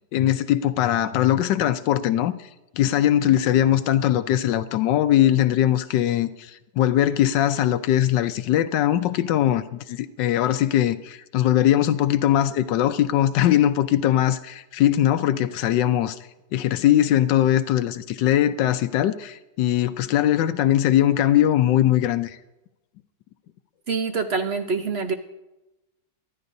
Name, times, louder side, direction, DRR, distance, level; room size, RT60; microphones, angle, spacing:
voice 1, 0.1-2.3 2.8-16.2 16.5-22.4, left 12 dB, 80° left, 1.3 m, -21 dB
voice 2, 23.9-25.1, right 4 dB, 50° right, 0.8 m, -25 dB
24.0 x 12.5 x 2.7 m
omnidirectional pair, 1.9 m